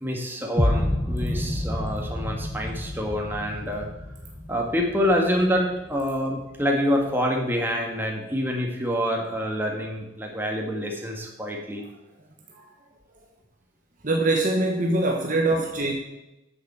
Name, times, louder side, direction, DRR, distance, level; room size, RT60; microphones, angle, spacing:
voice 1, 0.0-3.9 4.5-11.8 15.5-15.6, equal, 10° right, 1 dB, 1.6 m, -26 dB
sound 1, 0.6-6.6, left 1 dB, 20° left, 0.8 m, -29 dB
voice 2, 14.0-15.9, right 2 dB, 40° right, 0 dB, 1.1 m, -23 dB
8.9 x 7.0 x 6.8 m, 0.94 s
head